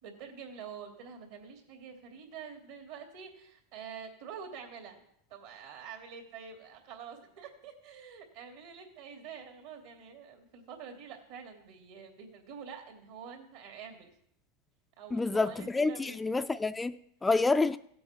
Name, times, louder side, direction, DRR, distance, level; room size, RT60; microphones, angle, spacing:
voice 1, 0.0-5.0 5.3-14.1 15.0-16.2, right 7 dB, 70° right, 2.8 m, -47 dB
voice 2, 15.1-17.8, left 3 dB, 10° left, 0.3 m, -28 dB
16.0 x 7.7 x 4.5 m
hypercardioid pair, 115°, 0 cm